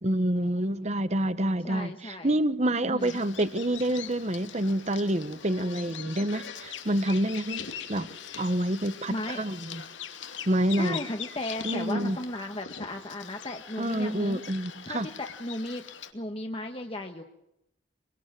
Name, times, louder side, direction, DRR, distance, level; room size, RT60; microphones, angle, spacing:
voice 1, 0.0-7.6 7.9-8.1 8.4-9.8 10.5-11.0 11.6-12.2 13.8-15.1, right 1 dB, 35° right, 13 dB, 1.2 m, -27 dB
voice 2, 1.6-2.4 2.8-3.2 9.1-9.4 10.8-14.4 14.8-15.9 16.1-17.2, left 1 dB, 30° left, 3 dB, 1.5 m, -35 dB
Bird vocalization bird call bird song, 3.0-16.1, left 8 dB, 75° left, 2.5 m, -42 dB
25.5 x 23.5 x 7.6 m, 0.83 s
head